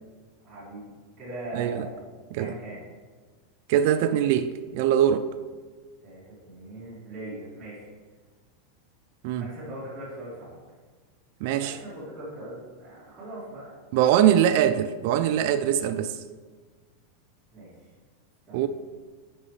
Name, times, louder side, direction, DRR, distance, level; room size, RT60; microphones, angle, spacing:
voice 1, 0.4-0.9 1.2-2.1 2.3-2.8 6.0-7.9 9.4-10.6 11.6-13.7 17.5-17.7 18.5-18.7, right 1 dB, 15° right, -12 dB, 2.1 m, -40 dB
voice 2, 1.5-1.9 2.3-2.5 3.7-5.3 9.2-9.5 11.4-11.8 13.9-16.2 18.5-18.7, right 10 dB, 50° right, 11 dB, 0.3 m, -22 dB
8.5 x 5.4 x 3.2 m, 1.4 s
supercardioid pair, 155°, 0 cm